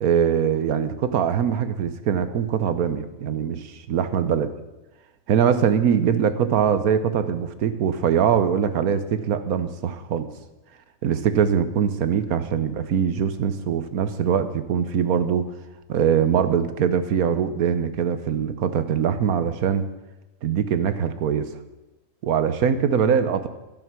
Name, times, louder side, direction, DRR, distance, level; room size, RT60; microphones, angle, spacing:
voice 1, 0.0-4.5 5.3-10.3 11.0-15.4 15.9-19.8 20.4-21.5 22.2-23.5, right 8 dB, 90° right, 11 dB, 1.4 m, -22 dB
13.0 x 10.5 x 6.2 m, 1.0 s
omnidirectional pair, 1.5 m